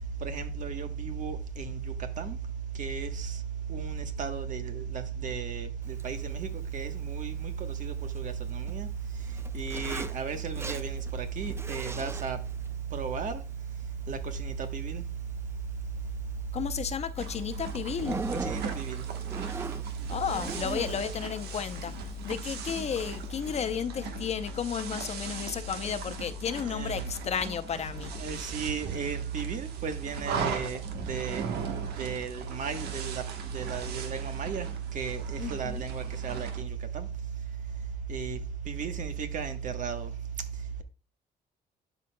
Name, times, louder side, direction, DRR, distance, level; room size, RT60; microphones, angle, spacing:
voice 1, 0.2-2.4 2.7-3.4 3.7-8.9 9.5-12.4 12.9-13.4 14.1-15.0 18.3-19.0 26.6-27.1 28.2-31.5 32.0-37.1 38.1-38.4 38.6-40.1, right 7 dB, 55° right, 1.1 m, -34 dB
Zipper (clothing), 5.8-23.7, right 3 dB, 15° right, 0.3 m, -43 dB
voice 2, 16.5-18.2 20.1-21.9 22.2-28.1 35.4-35.8, left 7 dB, 40° left, 0.6 m, -32 dB
sound 1, 17.2-36.6, right 6 dB, 85° right, 1.2 m, -40 dB
11.5 x 5.2 x 2.2 m
cardioid pair, 115°, 16 cm